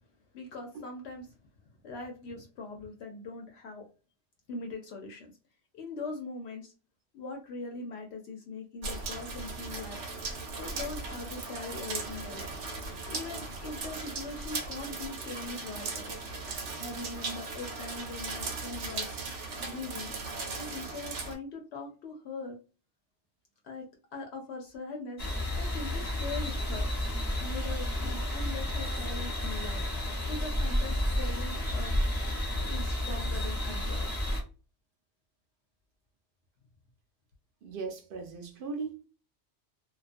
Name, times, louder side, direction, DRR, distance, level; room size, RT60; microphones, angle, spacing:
voice 1, 0.3-1.4 1.8-3.9 4.5-5.3 5.7-6.7 7.1-10.0 10.6-12.6 13.1-16.2 16.8-19.1 19.6-20.1 20.5-22.6 23.6-23.8 24.1-25.2 25.6-26.9 27.4-29.9 30.3-31.9 32.7-34.3, left 3 dB, 70° left, 0.8 m, -41 dB
sound 1, 8.8-21.3, right 3 dB, 90° right, 1.0 m, -38 dB
sound 2, 25.2-34.4, left 1 dB, 20° left, 0.7 m, -31 dB
voice 2, 37.6-39.1, right 4 dB, 60° right, 0.6 m, -38 dB
2.3 x 2.2 x 2.4 m
omnidirectional pair, 1.2 m